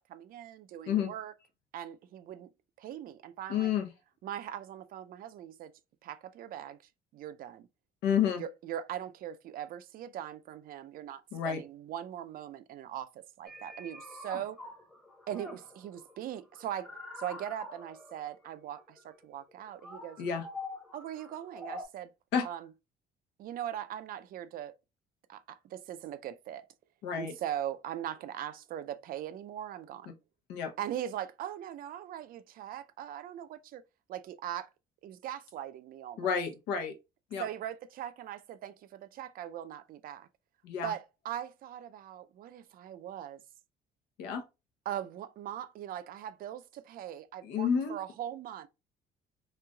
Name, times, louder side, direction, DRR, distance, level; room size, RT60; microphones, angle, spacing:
voice 1, 0.1-1.3 1.7-2.5 2.8-3.7 4.2-5.7 6.0-6.8 7.1-7.7 8.4-13.1 13.4-14.6 15.3-16.9 17.2-20.2 20.9-22.1 22.4-22.7 23.4-24.7 25.3-26.7 27.1-30.1 30.8-33.8 34.1-34.7 35.0-36.3 37.4-40.3 40.8-43.4 44.9-48.7, right 11 dB, 60° right, 0.4 m, -40 dB
voice 2, 3.5-3.9 8.0-8.4 11.3-11.6 20.2-20.5 22.3-22.5 27.0-27.3 30.5-30.7 36.2-36.9 37.3-37.5 40.6-40.9 44.2-44.4 47.4-48.0, left 7 dB, 90° left, 0.7 m, -30 dB
sound 1, 13.5-21.8, left 2 dB, 5° left, 0.8 m, -46 dB
3.1 x 2.6 x 2.2 m
cardioid pair, 110°, 17 cm